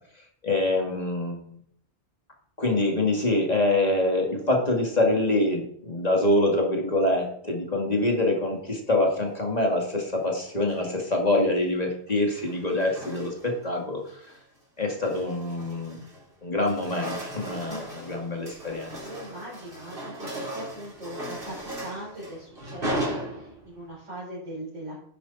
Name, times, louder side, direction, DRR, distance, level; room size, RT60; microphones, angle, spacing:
voice 1, 0.4-1.5 2.6-14.0 14.8-16.0 16.4-19.0, left 2 dB, 35° left, 0 dB, 2.4 m, -25 dB
sound 1, 10.5-11.0 12.1-13.6 14.1-14.4 14.8-16.3 16.5-23.9, right 1 dB, 50° right, 4.8 m, -37 dB
voice 2, 19.0-25.0, right 1 dB, 85° right, -7 dB, 4.9 m, -40 dB
10.5 x 10.0 x 4.2 m, 0.65 s
omnidirectional pair, 1.2 m